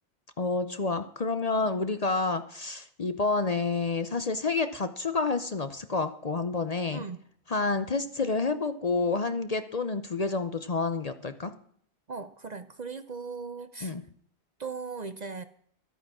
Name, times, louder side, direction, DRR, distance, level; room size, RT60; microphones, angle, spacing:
voice 1, 0.4-7.0 7.5-11.5 13.8-14.0, left 3 dB, 40° left, 10 dB, 0.7 m, -29 dB
voice 2, 6.9-7.2 12.1-13.9 14.6-15.4, right 4 dB, 45° right, 11 dB, 0.7 m, -38 dB
13.0 x 9.2 x 6.1 m, 0.62 s
omnidirectional pair, 1.2 m